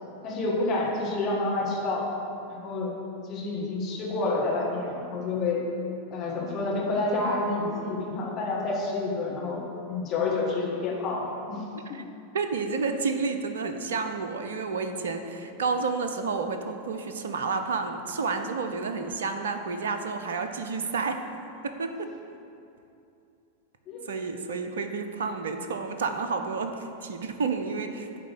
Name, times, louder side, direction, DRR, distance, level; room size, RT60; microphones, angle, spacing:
voice 1, 0.2-2.1 2.5-2.9 3.3-5.6 6.1-9.6 9.9-11.6 11.9-12.0 23.9-24.1, left 3 dB, 35° left, -3 dB, 1.6 m, -28 dB
voice 2, 12.3-21.2 21.6-22.1 24.1-28.2, right 4 dB, 65° right, 7 dB, 0.6 m, -30 dB
10.0 x 3.7 x 7.4 m, 2.7 s
figure-of-eight pair, 90°, 0 cm